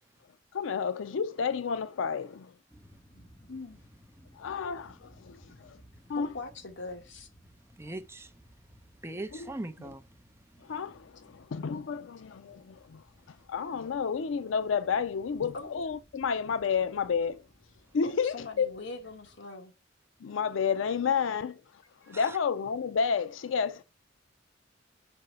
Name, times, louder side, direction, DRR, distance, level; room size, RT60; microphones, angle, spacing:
voice 1, 0.5-2.5 4.3-5.8 6.1-6.3 9.3-9.5 10.6-17.4 17.9-18.7 20.2-23.8, left 6 dB, 80° left, 0.4 m, -31 dB
sound 1, 2.7-19.4, equal, 15° left, 2.5 m, -59 dB
voice 2, 3.1-3.8 6.1-7.3 15.5-15.7 18.0-19.7 22.0-22.2, left 3 dB, 65° left, 1.6 m, -42 dB
voice 3, 7.8-8.3 9.0-10.0 22.1-22.4, right 2 dB, 15° right, 0.6 m, -39 dB
5.5 x 5.3 x 6.7 m
head